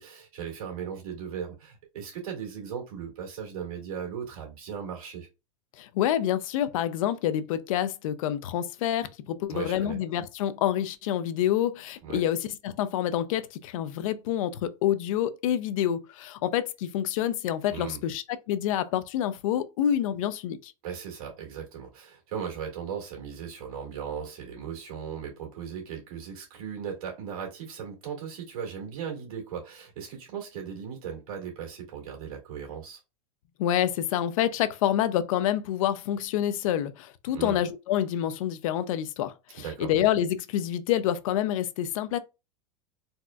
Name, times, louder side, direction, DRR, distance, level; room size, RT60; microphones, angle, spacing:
voice 1, 0.0-5.3 9.5-10.0 12.0-12.2 17.7-18.0 20.8-33.0 37.3-37.6 39.5-39.9, right 7 dB, 80° right, 2.0 m, -37 dB
voice 2, 5.8-20.7 33.6-42.2, left 11 dB, 70° left, 0.5 m, -27 dB
4.1 x 2.2 x 2.3 m
supercardioid pair, 155°, 18 cm